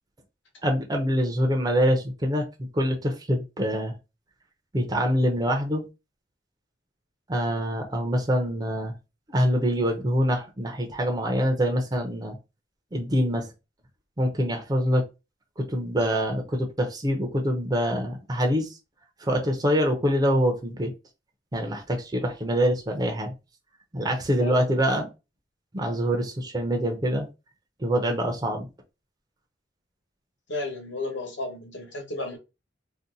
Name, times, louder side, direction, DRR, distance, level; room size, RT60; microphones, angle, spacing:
voice 1, 0.6-3.9 4.7-5.8 7.3-8.9 9.3-12.4 12.9-13.5 14.2-15.0 15.6-18.8 19.2-20.9 21.5-23.3 23.9-25.1 25.7-27.3 27.8-28.7, equal, 20° right, 0.5 m, -25 dB
voice 2, 30.5-32.4, left 2 dB, 70° left, 1.2 m, -33 dB
2.7 x 2.1 x 3.7 m
head